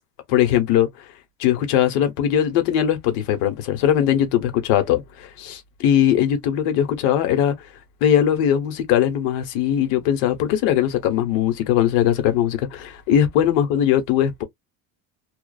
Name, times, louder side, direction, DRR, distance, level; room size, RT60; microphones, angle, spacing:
voice 1, 0.3-0.9 1.4-7.5 8.0-14.4, left 10 dB, 75° left, 1.1 m, -20 dB
2.5 x 2.3 x 2.3 m
cardioid pair, 160°, 42 cm